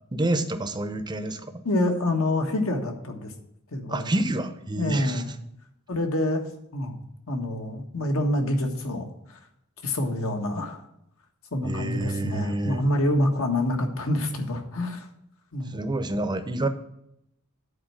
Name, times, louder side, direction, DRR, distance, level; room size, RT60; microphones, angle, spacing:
voice 1, 0.1-1.6 3.9-5.2 11.6-12.8 15.7-16.7, right 2 dB, 20° right, 9 dB, 0.7 m, -28 dB
voice 2, 1.6-3.3 3.7-4.1 4.8-5.3 5.9-7.0 7.3-9.4 9.8-10.8 11.5-15.1 15.5-15.8, left 1 dB, 65° left, 4 dB, 1.5 m, -27 dB
8.9 x 4.5 x 7.4 m, 0.78 s
head